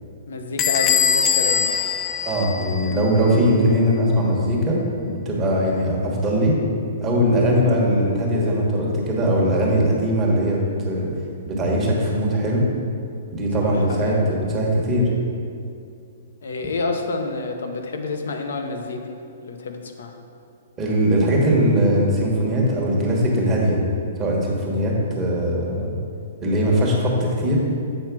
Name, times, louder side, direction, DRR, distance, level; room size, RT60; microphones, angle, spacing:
voice 1, 0.3-1.8 13.6-14.2 16.4-20.1, left 3 dB, 80° left, 4 dB, 1.0 m, -29 dB
Bell / Squeak, 0.6-3.1, left 7 dB, 20° left, 0.4 m, -22 dB
voice 2, 2.2-6.6 7.0-11.1 11.5-12.7 13.3-15.1 20.8-23.8 24.2-25.9 26.4-27.6, equal, 15° right, -4 dB, 1.3 m, -20 dB
8.0 x 4.5 x 6.0 m, 2.4 s
hypercardioid pair, 165°, 0 cm